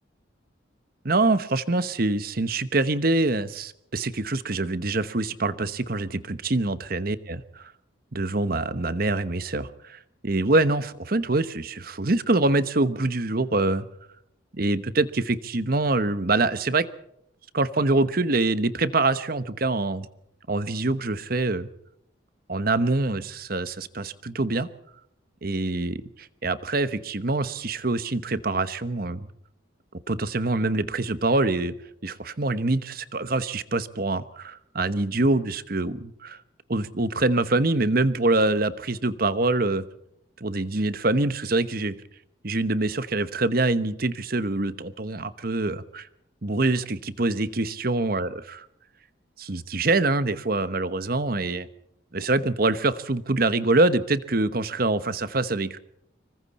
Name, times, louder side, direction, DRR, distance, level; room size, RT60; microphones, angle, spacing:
voice 1, 1.0-7.7 8.1-13.8 14.5-16.9 17.5-20.1 20.5-21.7 22.5-24.7 25.4-29.3 30.1-31.8 32.0-36.4 36.7-39.8 40.4-41.9 42.4-46.1 46.4-48.7 49.4-51.7 52.1-55.8, right 2 dB, 50° right, 13 dB, 1.0 m, -25 dB
26.0 x 23.5 x 4.2 m, 0.76 s
head